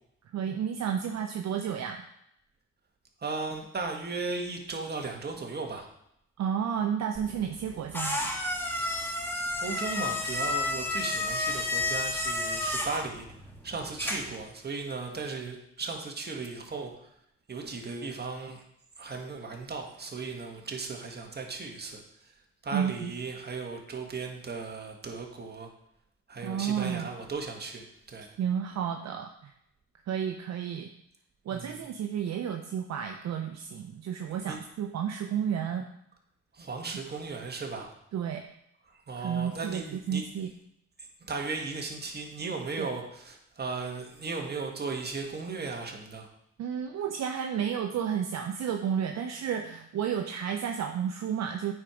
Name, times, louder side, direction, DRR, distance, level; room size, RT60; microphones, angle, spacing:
voice 1, 0.3-2.0 6.4-8.3 22.7-23.1 26.4-27.1 28.4-29.5 30.1-30.9 31.5-35.9 38.1-38.5 39.2-40.5 42.8-42.9 46.6-51.7, right 8 dB, 60° right, 4 dB, 0.7 m, -31 dB
voice 2, 3.2-5.9 8.9-9.1 9.6-13.2 13.6-16.9 17.5-18.6 19.0-22.3 22.6-25.7 26.3-28.3 31.5-31.8 34.5-34.6 36.5-37.9 39.1-40.2 41.0-46.3, right 4 dB, 35° right, 2 dB, 1.7 m, -36 dB
sound 1, 7.2-14.4, left 2 dB, 5° left, 1.4 m, -31 dB
8.9 x 4.5 x 5.0 m, 0.75 s
cardioid pair, 90°, 30 cm